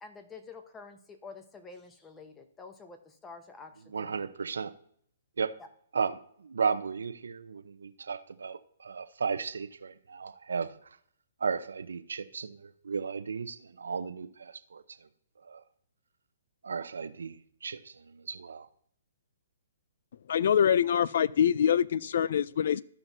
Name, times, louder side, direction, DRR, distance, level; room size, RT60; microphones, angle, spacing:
voice 1, 0.0-4.3 5.6-5.7, left 4 dB, 15° left, 0.9 m, -48 dB
voice 2, 3.9-4.7 5.4-5.6 5.9-11.0 11.4-15.1 15.4-15.6 16.6-18.7, right 5 dB, 85° right, 0.7 m, -35 dB
voice 3, 20.3-22.8, left 8 dB, 60° left, 0.3 m, -25 dB
14.0 x 5.7 x 2.7 m
hypercardioid pair, 145°, 0 cm